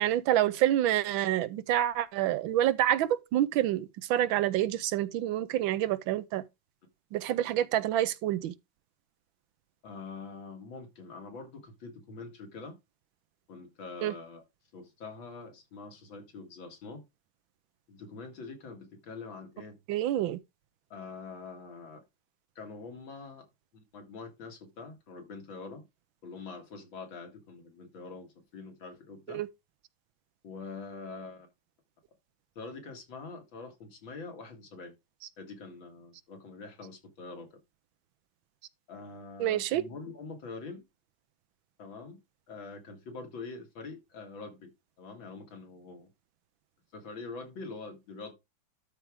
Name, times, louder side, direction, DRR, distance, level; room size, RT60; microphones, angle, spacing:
voice 1, 0.0-6.4 7.1-8.5 14.0-14.1 19.9-20.4 29.3-29.5 39.4-39.8, right 12 dB, 85° right, 1.5 m, -27 dB
voice 2, 9.8-12.8 13.5-14.4 14.7-17.0 17.9-19.8 20.9-22.0 22.6-23.5 23.7-25.8 26.2-29.4 30.4-31.5 32.6-34.9 35.4-37.6 38.9-40.8 41.8-42.2 42.5-44.7 45.0-46.1 46.9-48.3, left 4 dB, 90° left, 2.7 m, -44 dB
12.5 x 4.7 x 3.6 m
omnidirectional pair, 2.1 m